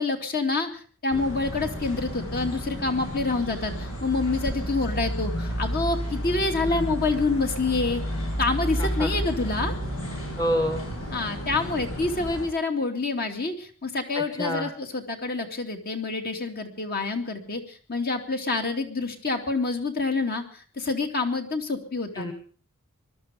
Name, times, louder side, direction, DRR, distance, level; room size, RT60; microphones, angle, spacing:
voice 1, 0.0-8.0 8.4-9.7 11.1-22.3, left 3 dB, 45° left, 4 dB, 2.5 m, -27 dB
sound 1, 1.1-12.5, equal, 80° left, 7.9 m, -31 dB
voice 2, 8.8-9.1 10.4-10.8 14.1-14.7 22.1-22.3, equal, 15° left, 7 dB, 1.5 m, -27 dB
21.5 x 12.5 x 5.2 m, 0.42 s
head